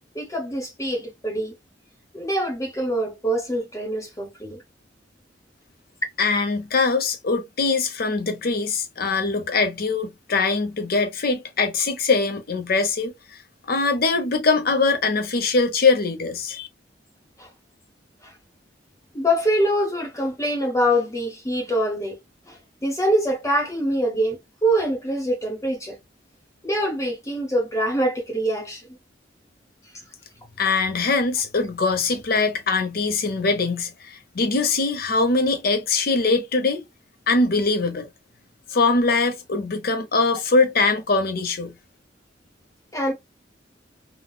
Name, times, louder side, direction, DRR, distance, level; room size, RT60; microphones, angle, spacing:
voice 1, 0.1-1.5 2.1-4.6 17.4-17.5 18.2-18.3 19.1-22.2 22.5-26.0 26.6-29.0 42.9-43.1, equal, 15° left, 0.9 m, -24 dB
voice 2, 6.2-13.1 13.7-16.7 30.6-36.8 37.3-38.1 38.7-41.7, left 3 dB, 55° left, 0.8 m, -22 dB
3.9 x 2.3 x 2.2 m
head